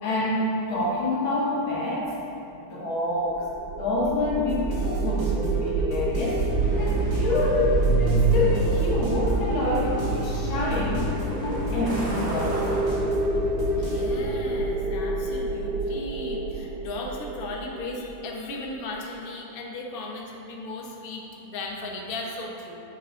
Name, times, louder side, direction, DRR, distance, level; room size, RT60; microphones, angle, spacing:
voice 1, 0.0-2.1 2.7-3.5 3.7-6.5 6.8-11.1 11.4-12.6, left 2 dB, 75° left, -7 dB, 2.6 m, -27 dB
sound 1, 3.3-18.5, right 4 dB, 70° right, 1.0 m, -28 dB
sound 2, 4.5-14.0, left 2 dB, 35° right, 1.5 m, -35 dB
Truck, 6.2-14.9, equal, 55° right, 1.9 m, -31 dB
voice 2, 13.7-22.8, left 2 dB, 45° left, -1 dB, 0.7 m, -36 dB
9.9 x 8.9 x 2.5 m, 2.8 s
omnidirectional pair, 2.2 m